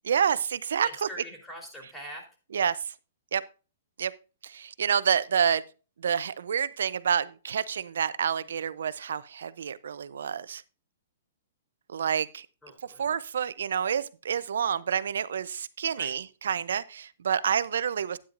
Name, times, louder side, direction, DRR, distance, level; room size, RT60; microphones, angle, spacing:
voice 1, 0.0-1.1 2.5-2.8 3.3-3.4 4.0-4.1 4.4-5.6 6.0-10.6 11.9-12.5 13.0-18.2, right 8 dB, 75° right, 0.6 m, -28 dB
voice 2, 0.8-2.3 12.6-13.1 16.0-16.1, equal, 10° left, 3.8 m, -43 dB
12.0 x 9.7 x 2.5 m
hypercardioid pair, 135°, 0 cm